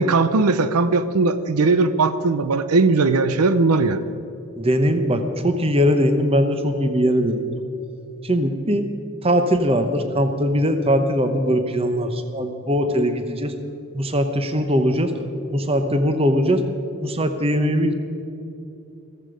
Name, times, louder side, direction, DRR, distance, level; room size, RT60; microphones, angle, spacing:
voice 1, 0.0-4.0, right 3 dB, 85° right, 12 dB, 0.6 m, -18 dB
voice 2, 4.6-7.5 8.2-8.9 9.2-13.6 13.9-15.1 15.5-16.6 17.0-17.9, equal, 25° right, 8 dB, 0.9 m, -20 dB
14.5 x 14.5 x 5.1 m, 2.8 s
head